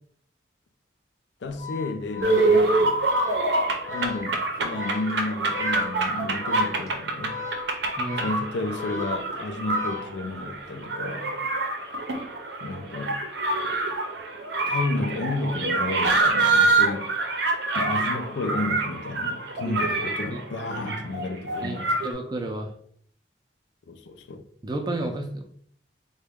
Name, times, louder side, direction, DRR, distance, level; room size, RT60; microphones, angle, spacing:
voice 1, 1.4-3.0 3.9-7.4 8.2-11.4 12.6-13.2 14.7-17.1 17.7-22.0 23.9-24.4, left 2 dB, 85° left, 0.4 m, -32 dB
Organ, 1.5-10.6, left 4 dB, 20° left, 0.6 m, -37 dB
sound 1, 2.2-22.1, right 3 dB, 75° right, 0.5 m, -26 dB
voice 2, 8.0-8.3 19.6-19.8 20.3-20.4 21.6-22.7 24.6-25.4, right 2 dB, 25° right, 0.3 m, -31 dB
3.8 x 2.1 x 3.4 m
head